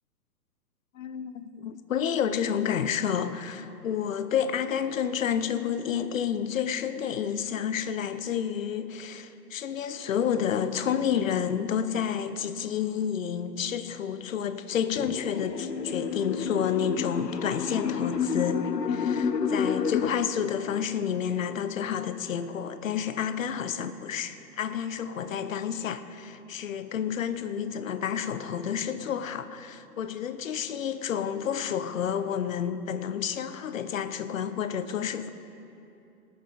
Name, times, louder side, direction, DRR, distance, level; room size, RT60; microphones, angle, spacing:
voice 1, 0.9-35.3, left 8 dB, 55° left, 0.9 m, -30 dB
sound 1, 14.9-20.1, left 6 dB, 80° left, 0.9 m, -29 dB
19.0 x 9.3 x 5.2 m
figure-of-eight pair, 120°, 48 cm